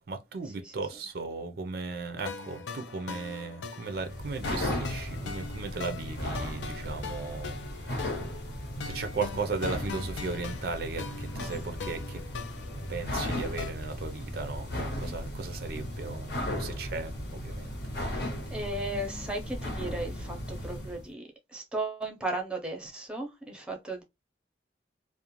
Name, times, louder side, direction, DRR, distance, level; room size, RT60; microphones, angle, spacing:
voice 1, 0.1-7.6 7.8-8.0 8.8-12.2 12.9-17.7, right 4 dB, 55° right, 0.4 m, -36 dB
sound 1, 2.3-13.7, left 5 dB, 80° left, 0.4 m, -41 dB
sound 2, 3.9-21.0, left 1 dB, 60° left, 0.8 m, -36 dB
voice 2, 18.5-24.0, right 2 dB, 5° right, 0.6 m, -36 dB
2.4 x 2.1 x 2.9 m
head